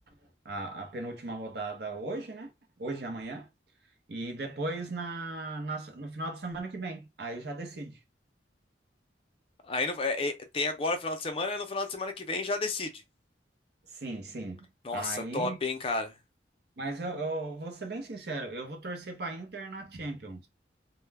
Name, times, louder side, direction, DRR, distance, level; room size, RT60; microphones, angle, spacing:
voice 1, 0.4-2.5 2.8-3.5 4.1-8.0 13.9-15.6 16.8-20.5, right 2 dB, 65° right, 0.7 m, -37 dB
voice 2, 9.7-12.9 14.8-16.1, left 3 dB, 30° left, 0.5 m, -31 dB
2.2 x 2.1 x 3.3 m
head